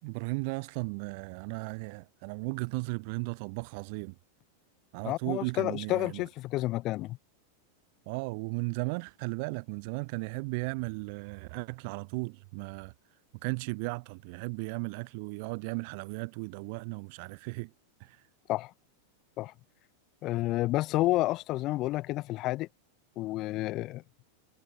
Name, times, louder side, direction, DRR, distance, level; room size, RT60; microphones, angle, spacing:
voice 1, 0.0-4.1 4.9-6.2 8.1-12.9 13.4-17.7 18.0-18.2, right 30 dB, 45° right, 6.7 m, -36 dB
voice 2, 5.0-7.2 18.5-18.7 19.4-19.5 20.2-22.7 23.2-24.0, left 17 dB, 35° left, 2.6 m, -30 dB
figure-of-eight pair, 90°, 0 cm